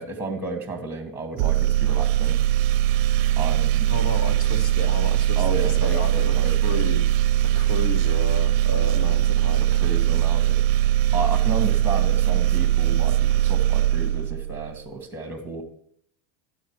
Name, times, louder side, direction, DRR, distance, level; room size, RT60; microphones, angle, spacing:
voice 1, 0.0-2.4 3.4-3.9 5.3-6.8 9.7-10.6 11.1-15.6, right 3 dB, 5° right, 4 dB, 1.8 m, -32 dB
sound 1, 1.4-14.8, right 13 dB, 45° right, 0.6 m, -21 dB
voice 2, 3.9-7.1 7.5-9.6, left 2 dB, 60° left, 5 dB, 2.1 m, -32 dB
12.5 x 9.0 x 4.8 m, 0.66 s
supercardioid pair, 165°, 42 cm